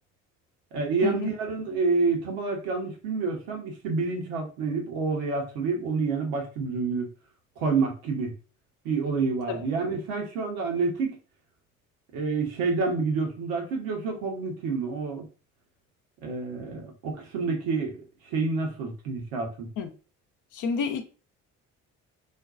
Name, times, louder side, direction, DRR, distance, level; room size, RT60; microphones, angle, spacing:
voice 1, 0.7-7.1 7.6-8.3 8.8-11.2 12.1-15.2 16.2-18.0 18.2-19.7, right 4 dB, 75° right, 0.9 m, -28 dB
voice 2, 20.6-21.0, left 6 dB, 55° left, 0.6 m, -29 dB
2.5 x 2.2 x 2.4 m
hypercardioid pair, 50°, 37 cm